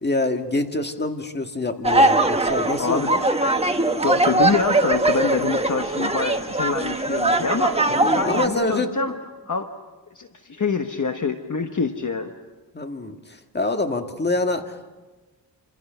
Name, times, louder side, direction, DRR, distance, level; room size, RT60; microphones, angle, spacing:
voice 1, 0.0-3.2 7.9-8.9 12.7-14.9, left 2 dB, 25° left, 5 dB, 1.7 m, -26 dB
sound 1, 1.8-8.5, right 2 dB, 15° right, 1.3 m, -21 dB
voice 2, 2.8-3.1 4.0-7.8 8.1-9.1 9.5-9.7 10.1-12.3, left 4 dB, 40° left, 5 dB, 1.2 m, -25 dB
28.5 x 26.5 x 5.7 m, 1.2 s
wide cardioid pair, 130°, 45 cm